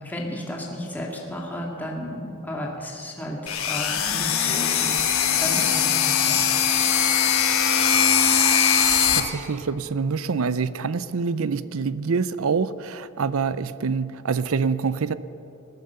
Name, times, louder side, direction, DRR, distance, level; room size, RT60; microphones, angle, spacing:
voice 1, 0.0-6.4, equal, 10° left, -2 dB, 1.9 m, -33 dB
sound 1, 3.5-9.2, left 8 dB, 80° left, 1.4 m, -21 dB
voice 2, 9.2-15.1, right 5 dB, 85° right, 16 dB, 0.6 m, -26 dB
19.5 x 10.5 x 6.8 m, 2.8 s
head